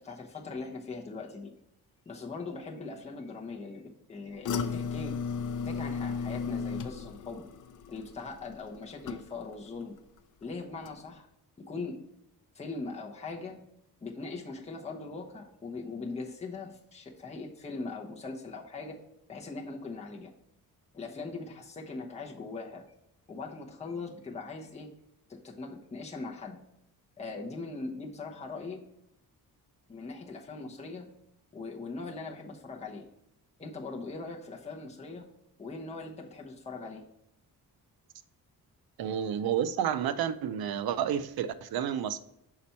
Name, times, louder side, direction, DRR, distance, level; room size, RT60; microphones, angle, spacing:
voice 1, 0.0-1.5 2.1-5.1 5.6-7.4 7.9-9.9 10.4-11.3 11.7-12.0 12.5-13.6 14.0-19.0 19.3-20.3 20.9-22.8 23.3-24.9 25.3-26.6 27.2-28.8 29.9-31.1 31.5-33.1 33.6-35.2 35.6-37.0, left 3 dB, 15° left, -1 dB, 0.8 m, -40 dB
sound 1, 4.4-9.7 10.0-10.4 10.8-10.9, left 5 dB, 55° left, 0.5 m, -35 dB
voice 2, 39.0-42.2, right 9 dB, 70° right, 13 dB, 0.5 m, -30 dB
5.7 x 4.2 x 4.3 m, 0.80 s
wide cardioid pair, 155°, 38 cm